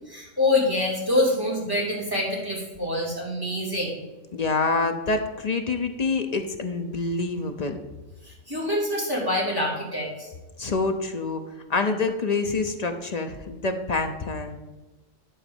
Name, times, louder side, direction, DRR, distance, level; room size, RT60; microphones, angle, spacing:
voice 1, 0.1-4.0 8.2-10.3, left 1 dB, 15° right, -5 dB, 2.9 m, -25 dB
voice 2, 4.3-7.8 10.6-11.4 11.7-14.6, left 3 dB, 40° left, 5 dB, 0.6 m, -26 dB
11.0 x 4.0 x 7.1 m, 1.2 s
omnidirectional pair, 1.4 m